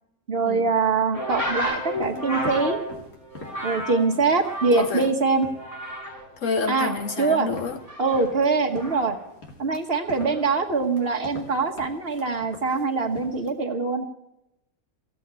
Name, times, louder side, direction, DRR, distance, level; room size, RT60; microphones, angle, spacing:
voice 1, 0.3-2.8 3.6-5.5 6.7-7.5 8.0-9.2 9.6-14.1, right 4 dB, 40° right, 1.3 m, -23 dB
sound 1, 1.1-5.1 5.4-6.3 6.6-9.2 10.1-10.4, equal, 35° left, 4.5 m, -33 dB
sound 2, 1.6-13.5, left 2 dB, 85° left, 3.2 m, -45 dB
voice 2, 4.7-5.1 6.4-7.8, left 5 dB, 60° left, 1.1 m, -28 dB
16.0 x 7.7 x 9.5 m
omnidirectional pair, 1.7 m